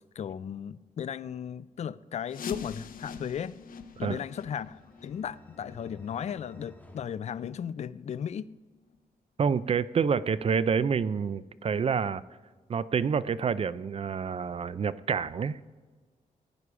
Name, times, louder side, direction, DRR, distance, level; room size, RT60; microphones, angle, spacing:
voice 1, 0.0-3.6 4.0-8.5, left 8 dB, 50° left, 0.4 m, -36 dB
sound 1, 2.3-7.9 8.2-8.3 8.9-9.0 9.6-9.7 10.2-10.3, left 6 dB, 75° left, 0.8 m, -45 dB
sound 2, 3.8-8.2, left 2 dB, 10° left, 1.7 m, -55 dB
voice 2, 9.4-12.2 12.7-15.6, right 6 dB, 40° right, 0.4 m, -28 dB
15.5 x 9.8 x 4.9 m
wide cardioid pair, 110°, 15 cm